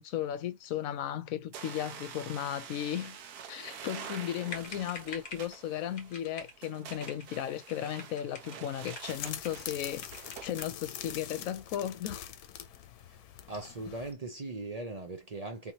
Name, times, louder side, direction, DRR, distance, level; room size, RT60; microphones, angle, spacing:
voice 1, 0.0-3.2 3.5-10.1 10.4-12.3, left 10 dB, 70° left, 1.0 m, -35 dB
sound 1, 1.5-10.5, right 7 dB, 90° right, 1.2 m, -47 dB
sound 2, 4.5-5.5 6.0-6.6 6.9-7.3 7.7-8.6 8.9-9.7 10.0-10.8, left 3 dB, 40° left, 1.1 m, -46 dB
sound 3, 9.1-14.1, left 10 dB, 90° left, 1.1 m, -44 dB
voice 2, 13.5-15.7, right 2 dB, 45° right, 0.5 m, -39 dB
3.4 x 2.8 x 2.8 m
omnidirectional pair, 1.6 m